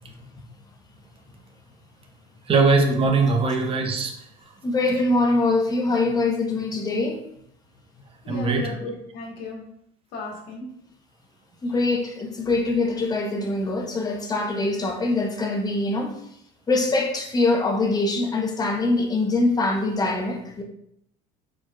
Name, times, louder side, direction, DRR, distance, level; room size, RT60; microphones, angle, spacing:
voice 1, 2.5-4.1 8.3-8.7, right 4 dB, 35° right, 4 dB, 0.9 m, -20 dB
voice 2, 4.6-7.2 11.6-16.2 16.7-20.6, left 2 dB, 20° left, 2 dB, 0.9 m, -23 dB
voice 3, 8.2-9.6 10.1-10.7 11.7-11.8, left 2 dB, 70° left, -1 dB, 1.4 m, -35 dB
4.7 x 4.3 x 2.4 m, 0.72 s
cardioid pair, 115°, 17 cm